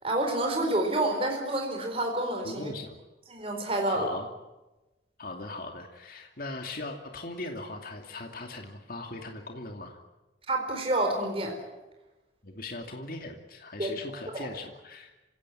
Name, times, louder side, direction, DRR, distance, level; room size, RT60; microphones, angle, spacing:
voice 1, 0.0-2.7 3.3-4.1 10.5-11.6 13.8-13.9 14.3-14.5, right 1 dB, 30° right, 2 dB, 4.5 m, -28 dB
voice 2, 2.4-3.0 3.8-4.3 5.2-10.0 12.4-15.1, left 2 dB, 50° left, 3 dB, 2.6 m, -39 dB
26.5 x 17.5 x 10.0 m, 1.1 s
head